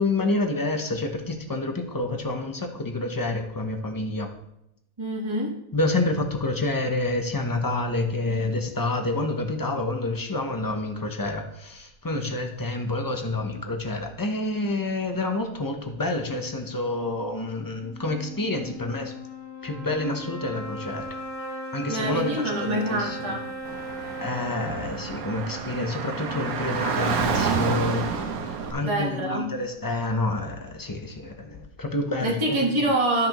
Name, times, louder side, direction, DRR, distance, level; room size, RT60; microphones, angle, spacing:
voice 1, 0.0-4.3 5.7-19.1 19.6-21.1 21.7-23.4 24.2-28.1 28.7-32.8, left 2 dB, 20° left, 4 dB, 0.7 m, -28 dB
voice 2, 5.0-5.5 21.9-23.5 28.7-29.5 32.2-33.3, right 1 dB, 20° right, -3 dB, 1.3 m, -26 dB
sound 1, 17.7-27.2, equal, 60° left, 1.9 m, -38 dB
Car / Traffic noise roadway noise, 23.7-28.7, right 5 dB, 80° right, 1.3 m, -29 dB
12.5 x 5.9 x 3.0 m, 0.81 s
omnidirectional pair, 1.5 m